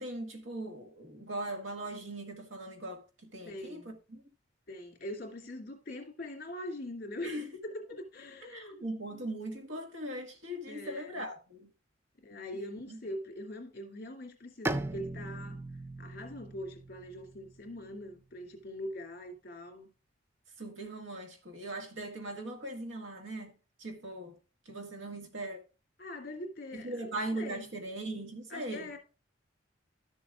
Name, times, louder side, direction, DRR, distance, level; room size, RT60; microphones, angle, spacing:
voice 1, 0.0-4.2 7.2-7.5 8.5-11.7 12.9-13.0 20.6-23.5 23.8-24.3 24.7-25.6 26.7-28.9, right 1 dB, 80° right, 1.8 m, -40 dB
voice 2, 3.4-4.0 4.7-8.8 9.1-9.3 10.7-11.2 12.2-15.6 16.0-19.9 26.0-27.7 28.5-29.0, left 1 dB, 50° left, 2.3 m, -43 dB
Bowed string instrument, 14.6-18.3, right 1 dB, 15° right, 0.4 m, -39 dB
12.5 x 7.1 x 2.4 m
head